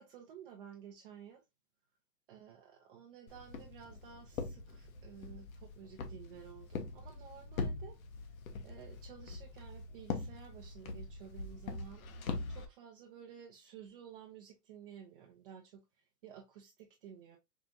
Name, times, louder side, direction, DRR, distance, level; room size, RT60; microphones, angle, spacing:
voice 1, 0.0-1.4 2.3-8.0 8.3-8.4 8.6-17.4, right 8 dB, 35° right, 0.6 m, -53 dB
Walk footsteps, 3.3-12.6, left 4 dB, 55° left, 1.0 m, -43 dB
4.8 x 2.5 x 2.5 m
hypercardioid pair, 150°, 48 cm